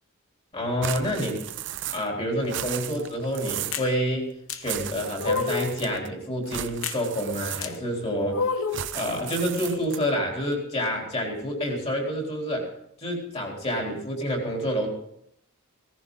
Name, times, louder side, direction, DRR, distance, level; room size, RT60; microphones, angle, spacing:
voice 1, 0.5-1.4 1.9-8.4 8.9-12.7 13.0-14.9, equal, 30° left, 0 dB, 3.8 m, -28 dB
sound 1, 0.8-2.2 2.4-3.9 4.6-6.1 6.5-8.0 8.7-10.2, right 11 dB, 60° right, 0.7 m, -35 dB
sound 2, 3.7-3.9 4.5-4.6 5.2-5.8 6.8-7.0 7.6-7.7 8.3-8.9, left 5 dB, 65° left, 0.9 m, -28 dB
17.0 x 14.5 x 4.0 m, 0.74 s
head